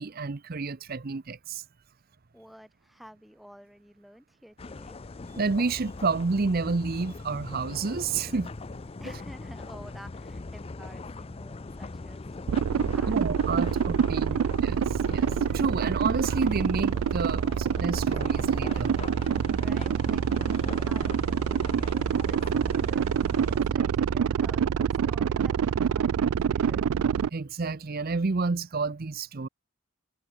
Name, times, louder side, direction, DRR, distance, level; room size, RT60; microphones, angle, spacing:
voice 1, 0.0-1.6 5.4-8.5 13.1-19.0 27.3-29.5, right 4 dB, 45° right, 0.6 m, -30 dB
voice 2, 2.3-5.0 9.0-12.3 12.9-13.3 13.7-14.5 19.6-20.2 20.6-23.0 23.4-26.9, equal, ahead, 3.7 m, -51 dB
sound 1, 4.6-23.7, left 3 dB, 25° left, 0.5 m, -41 dB
sound 2, 12.5-27.3, right 7 dB, 85° right, 0.4 m, -26 dB
head